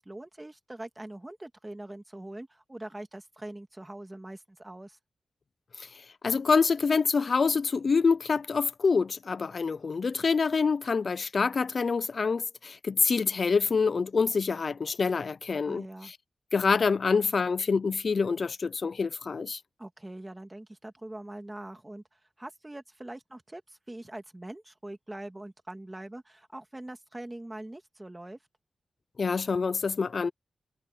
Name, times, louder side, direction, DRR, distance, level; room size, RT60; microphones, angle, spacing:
voice 1, 0.0-5.0 15.6-16.1 19.8-28.4, right 1 dB, 15° right, 2.0 m, -43 dB
voice 2, 6.2-16.2 16.5-19.6 29.2-30.3, left 5 dB, 50° left, 0.4 m, -26 dB
wide cardioid pair, 140°, 0 cm